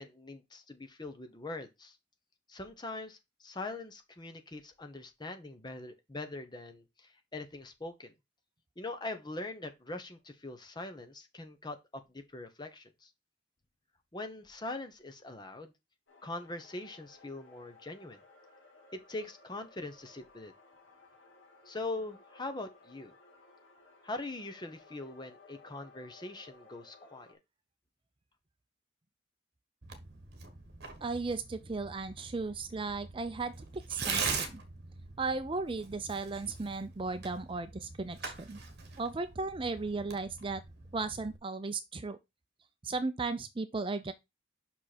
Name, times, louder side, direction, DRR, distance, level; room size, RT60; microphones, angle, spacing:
voice 1, 0.0-2.0 2.5-8.1 8.8-13.1 14.1-15.7 16.2-18.2 18.9-20.5 21.7-23.1 24.0-27.4, left 2 dB, 25° left, 1.1 m, -42 dB
sound 1, 16.1-27.3, left 3 dB, 85° left, 1.6 m, -59 dB
Tearing, 29.8-41.4, right 5 dB, 55° right, 1.4 m, -42 dB
voice 2, 31.0-34.6 35.2-38.6 39.0-40.6 40.9-42.2 42.8-44.1, right 3 dB, 25° right, 0.5 m, -36 dB
5.9 x 5.3 x 4.3 m
head